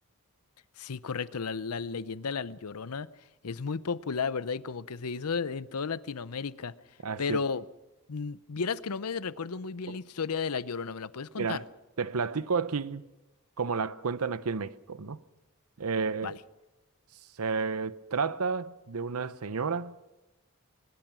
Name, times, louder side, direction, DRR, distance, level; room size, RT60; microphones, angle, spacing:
voice 1, 0.8-3.1 3.4-6.7 7.2-7.6 8.1-11.6 16.2-16.4, left 5 dB, 85° left, 0.7 m, -33 dB
voice 2, 7.0-7.4 11.4-11.6 12.0-13.0 13.6-15.2 15.8-16.3 17.4-19.9, right 5 dB, 75° right, 0.8 m, -31 dB
22.0 x 21.5 x 6.1 m
head